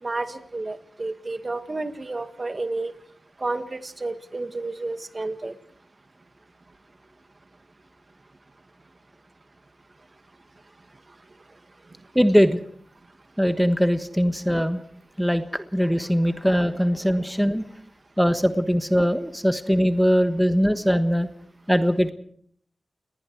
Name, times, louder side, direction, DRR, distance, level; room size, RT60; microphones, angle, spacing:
voice 1, 0.0-2.9 3.4-5.5, right 2 dB, 40° right, 9 dB, 1.8 m, -31 dB
voice 2, 12.1-12.6 13.4-14.8 15.2-17.6 18.2-21.3 21.7-22.1, equal, ahead, 9 dB, 1.3 m, -21 dB
29.0 x 19.5 x 4.7 m, 0.64 s
cardioid pair, 50°, 0 cm